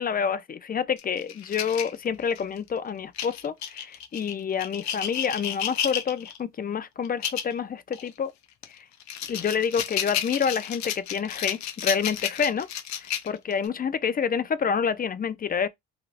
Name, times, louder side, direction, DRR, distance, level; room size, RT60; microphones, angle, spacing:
voice 1, 0.0-8.3 8.7-8.8 9.3-12.7 13.0-15.7, left 6 dB, 30° left, 0.4 m, -28 dB
sound 1, 1.0-2.6 3.2-6.4 7.0-7.5 7.9-8.1 8.6-13.7, left 9 dB, 65° left, 0.7 m, -32 dB
3.3 x 2.4 x 2.4 m
cardioid pair, 90°, 30 cm